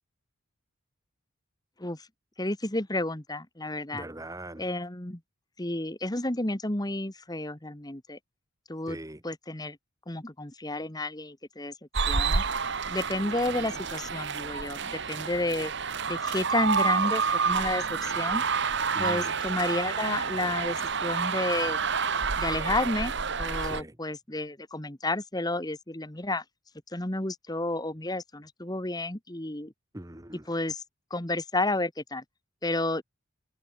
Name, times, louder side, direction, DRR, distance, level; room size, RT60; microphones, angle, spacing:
voice 1, 2.4-4.1 4.6-5.2 5.6-8.2 8.7-9.0 9.2-9.8 10.1-11.7 12.1-12.4 12.9-15.7 16.1-18.4 19.0-21.8 22.4-26.4 26.9-29.7 30.5-30.8 31.1-32.2 32.6-33.0, left 2 dB, 20° left, 1.7 m, -31 dB
voice 2, 3.9-4.7 8.9-9.2 13.4-13.8 18.9-19.3 23.6-24.0 29.9-30.5, right 1 dB, 15° right, 1.4 m, -41 dB
sound 1, 11.9-23.8, right 5 dB, 55° right, 1.4 m, -29 dB
head